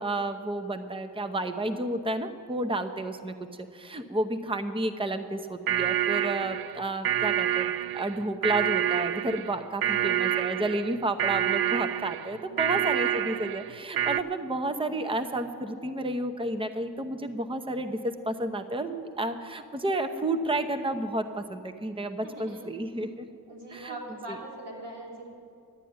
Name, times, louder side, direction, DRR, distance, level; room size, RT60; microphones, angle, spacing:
voice 1, 0.0-3.3 3.7-23.3 23.7-24.0 24.3-24.4, right 1 dB, 15° right, 8 dB, 0.8 m, -31 dB
sound 1, 5.7-14.2, right 11 dB, 60° right, 0.5 m, -28 dB
voice 2, 9.8-10.3 12.4-13.2 22.2-23.1 23.5-25.3, right 2 dB, 80° right, -4 dB, 3.7 m, -42 dB
12.0 x 9.0 x 9.6 m, 2.4 s
cardioid pair, 65°, 40 cm